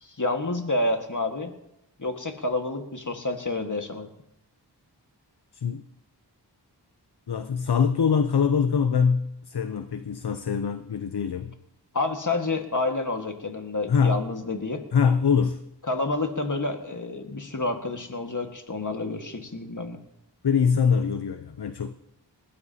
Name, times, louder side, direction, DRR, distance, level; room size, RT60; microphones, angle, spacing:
voice 1, 0.0-1.5 2.0-4.1 11.9-14.8 15.9-20.0, left 2 dB, 45° left, 5 dB, 1.7 m, -29 dB
voice 2, 7.3-11.5 13.9-14.2 14.9-15.6 20.4-21.9, left 6 dB, 65° left, 10 dB, 0.7 m, -23 dB
20.5 x 15.5 x 2.8 m, 0.82 s
wide cardioid pair, 40°, 43 cm